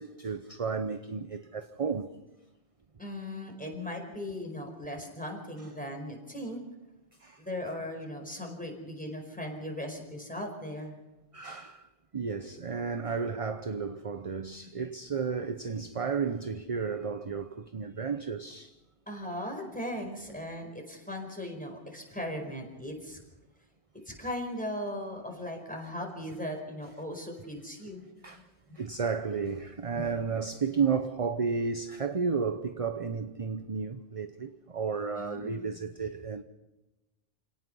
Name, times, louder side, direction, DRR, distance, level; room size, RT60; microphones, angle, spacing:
voice 1, 0.0-2.1 7.2-7.4 11.3-11.8 12.1-18.7 28.2-28.5 28.7-36.4, right 5 dB, 35° right, 0.8 m, -32 dB
voice 2, 3.0-6.6 7.4-10.9 19.1-23.2 24.0-28.0 28.7-28.8 30.0-30.1 35.2-35.9, left 1 dB, 5° left, 4.9 m, -38 dB
29.0 x 18.0 x 5.5 m
omnidirectional pair, 1.1 m